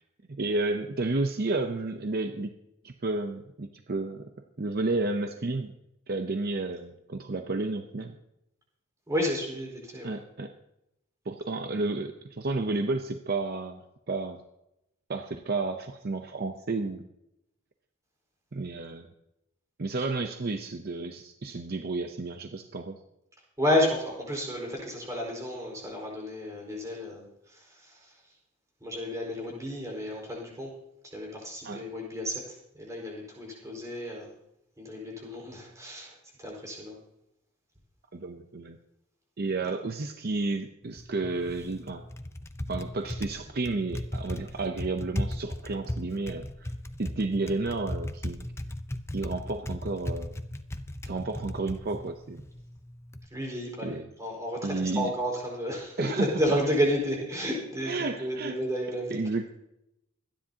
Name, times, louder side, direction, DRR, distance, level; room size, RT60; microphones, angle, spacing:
voice 1, 0.3-2.5 2.8-4.3 4.6-5.7 6.1-8.1 10.0-10.5 11.3-13.8 14.1-14.4 15.1-17.1 18.5-19.1 19.8-23.0 31.6-31.8 38.1-38.8 39.4-42.0 42.7-46.7 47.0-48.5 49.1-50.3 51.0-52.4 53.8-54.1 54.6-55.1 56.0-56.6 57.8-58.6 59.1-59.5, right 3 dB, 50° right, 6 dB, 0.7 m, -31 dB
voice 2, 9.1-10.1 23.6-28.1 28.8-30.7 31.1-34.3 34.8-37.0 53.3-59.1, equal, 15° right, -1 dB, 4.6 m, -31 dB
Typing, 40.8-53.3, left 1 dB, 15° left, 0.6 m, -37 dB
25.0 x 10.0 x 2.9 m, 0.85 s
head